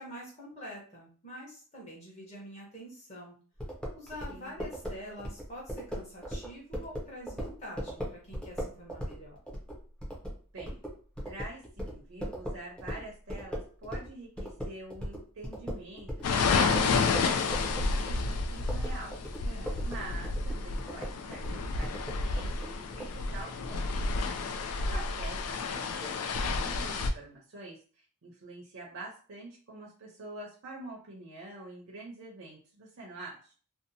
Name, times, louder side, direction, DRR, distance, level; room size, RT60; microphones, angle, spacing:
voice 1, 0.0-3.3 3.9-9.4 19.4-19.8 24.1-24.5, equal, 30° left, -3 dB, 0.9 m, -46 dB
sound 1, 3.6-14.1 14.4-23.1, equal, 5° left, 0.5 m, -38 dB
voice 2, 11.2-19.1 19.6-23.8 24.8-33.5, right 2 dB, 60° right, -3 dB, 0.6 m, -46 dB
sound 2, 16.2-27.1, left 4 dB, 90° left, 0.4 m, -30 dB
2.7 x 2.1 x 2.6 m, 0.41 s
head